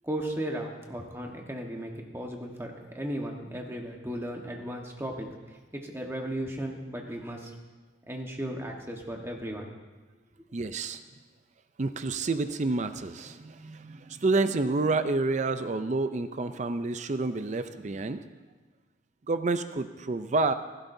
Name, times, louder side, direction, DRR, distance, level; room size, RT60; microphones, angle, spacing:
voice 1, 0.0-7.5 8.1-9.7, right 1 dB, 15° right, 1 dB, 1.3 m, -36 dB
voice 2, 10.5-11.0 11.8-18.2 19.3-20.5, right 3 dB, 35° right, 10 dB, 0.5 m, -29 dB
16.0 x 15.0 x 2.7 m, 1.3 s
head